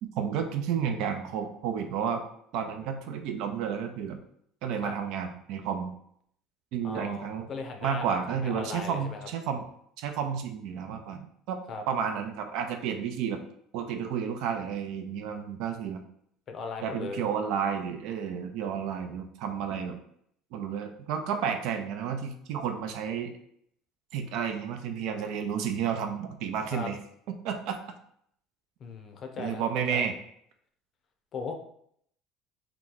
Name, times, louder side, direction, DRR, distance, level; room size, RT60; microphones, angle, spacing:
voice 1, 0.0-2.2 2.5-4.2 4.6-5.9 6.7-7.5 7.8-9.7 10.0-11.6 11.9-13.4 13.7-16.0 16.8-20.0 20.5-23.3 24.1-27.0 27.3-27.8 29.4-30.1, right 7 dB, 70° right, 6 dB, 0.4 m, -31 dB
voice 2, 6.8-9.3 11.7-11.8 16.5-17.2 26.7-26.9 28.8-30.1 31.3-31.5, left 4 dB, 45° left, 4 dB, 0.6 m, -38 dB
2.9 x 2.3 x 3.8 m, 0.69 s
supercardioid pair, 105°, 0 cm